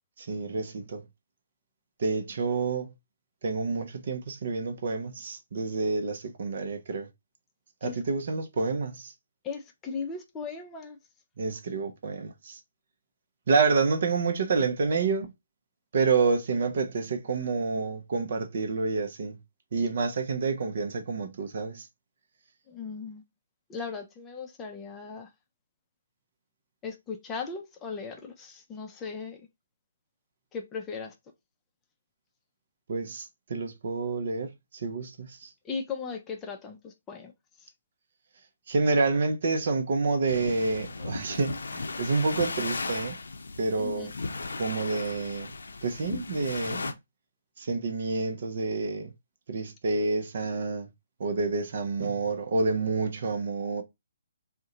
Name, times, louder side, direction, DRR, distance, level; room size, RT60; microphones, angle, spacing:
voice 1, 0.2-1.0 2.0-2.9 3.4-7.1 7.8-9.1 11.4-12.6 13.5-15.3 15.9-19.4 19.7-21.9 32.9-35.5 38.7-43.2 43.6-44.1 44.6-45.5 45.8-46.9 47.6-49.1 49.5-50.9 51.2-53.8, right 4 dB, 50° right, 0.5 m, -28 dB
voice 2, 9.4-11.0 22.7-23.2 23.7-25.3 26.8-29.4 30.5-31.1 35.6-37.3 37.6-37.7 43.8-44.1, left 5 dB, 15° left, 0.5 m, -37 dB
sound 1, 40.3-46.9, left 3 dB, 65° left, 0.5 m, -36 dB
2.6 x 2.1 x 3.7 m
figure-of-eight pair, 135°, 0 cm